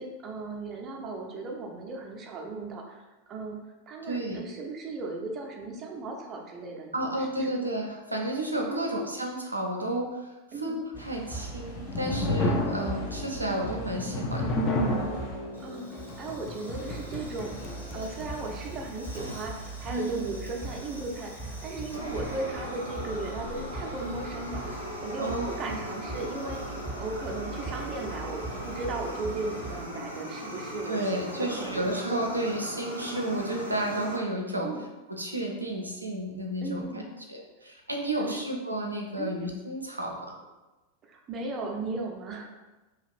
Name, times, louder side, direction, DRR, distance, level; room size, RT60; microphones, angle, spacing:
voice 1, 0.0-3.0 3.3-3.6 3.9-7.1 7.4-7.5 8.7-9.0 10.5-10.8 13.4-13.7 15.6-26.6 27.0-32.0 33.0-33.3 34.6-34.8 36.6-37.1 38.2-38.4 39.2-39.4 41.0-42.5, right 3 dB, 30° right, 1 dB, 0.5 m, -36 dB
voice 2, 4.1-4.4 6.9-10.3 10.6-14.5 19.9-20.3 25.2-25.8 30.9-34.7 35.1-36.9 37.3-40.3, right 1 dB, 85° right, 0 dB, 0.5 m, -32 dB
sound 1, 10.9-29.8, right 2 dB, 45° left, 1.4 m, -41 dB
sound 2, 11.5-18.6, left 1 dB, 30° left, 0.5 m, -32 dB
Fire, 15.5-34.2, equal, 90° left, 0.6 m, -40 dB
2.9 x 2.4 x 3.2 m, 1.1 s
figure-of-eight pair, 90°, 0 cm